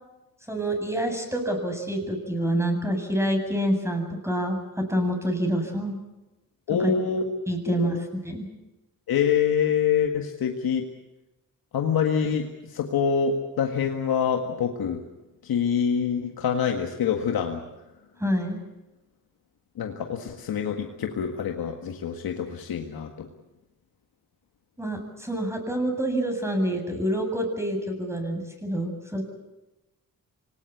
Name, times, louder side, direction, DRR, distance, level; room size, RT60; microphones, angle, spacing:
voice 1, 0.5-6.0 6.8-6.9 7.5-8.0 8.2-8.5 18.2-18.6 24.8-29.2, right 1 dB, 5° right, 4 dB, 8.0 m, -27 dB
voice 2, 6.7-7.2 7.7-7.9 9.1-10.9 11.7-15.0 15.4-17.6 19.8-23.3, left 7 dB, 90° left, 3 dB, 1.8 m, -26 dB
25.5 x 19.0 x 8.4 m, 1.0 s
cardioid pair, 60°, 35 cm